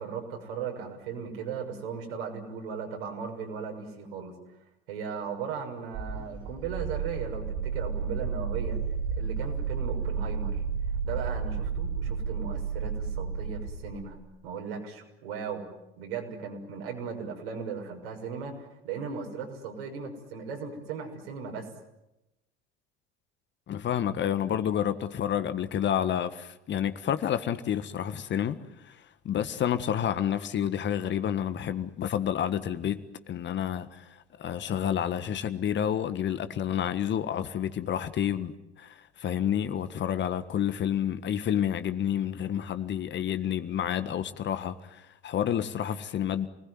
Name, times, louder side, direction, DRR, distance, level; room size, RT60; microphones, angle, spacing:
voice 1, 0.0-4.3 4.9-8.8 9.2-10.6 11.0-14.2 14.4-15.7 16.0-21.7, right 6 dB, 65° right, 6.5 m, -37 dB
sound 1, 5.9-14.1, right 6 dB, 30° right, 4.9 m, -32 dB
voice 2, 23.7-46.5, left 9 dB, 35° left, 1.6 m, -29 dB
29.0 x 20.5 x 9.6 m
figure-of-eight pair, 65°, 32 cm